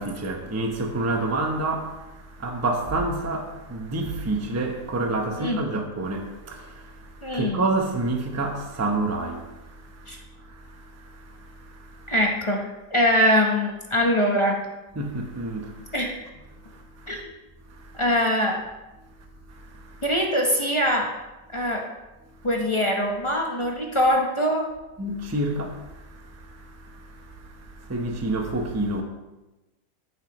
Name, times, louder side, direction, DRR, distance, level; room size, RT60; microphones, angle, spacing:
voice 1, 0.0-12.1 15.0-15.9 16.6-17.2 17.7-18.0 19.5-20.0 25.0-29.0, right 2 dB, 15° right, 0.5 m, -29 dB
voice 2, 7.2-7.6 10.1-10.2 12.1-14.6 15.9-16.3 17.1-17.2 17.9-18.6 20.0-21.1 21.5-21.9 22.4-24.7, equal, 25° left, 0.7 m, -23 dB
13.5 x 6.4 x 3.1 m
omnidirectional pair, 1.9 m